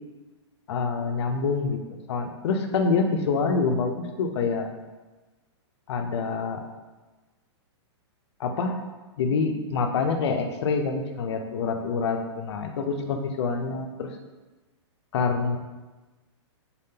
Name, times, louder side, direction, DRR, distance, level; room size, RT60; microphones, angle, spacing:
voice 1, 0.7-1.8 2.1-4.7 5.9-6.6 8.4-8.8 9.2-14.1 15.1-15.6, left 4 dB, 65° left, 5 dB, 0.6 m, -26 dB
4.1 x 3.6 x 2.8 m, 1.2 s
hypercardioid pair, 155°, 15 cm